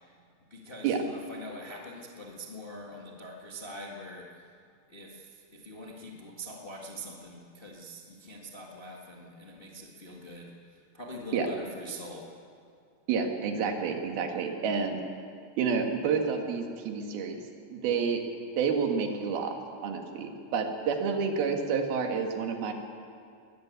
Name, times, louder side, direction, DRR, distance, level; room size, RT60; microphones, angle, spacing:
voice 1, 0.5-4.4 4.9-5.3 5.5-10.5 10.9-12.3, equal, 35° left, -1 dB, 0.8 m, -43 dB
voice 2, 13.1-15.0 15.6-17.4 17.7-18.2 18.6-19.6 19.8-22.7, right 6 dB, 85° right, 4 dB, 3.7 m, -29 dB
21.0 x 14.5 x 9.4 m, 2.4 s
omnidirectional pair, 4.2 m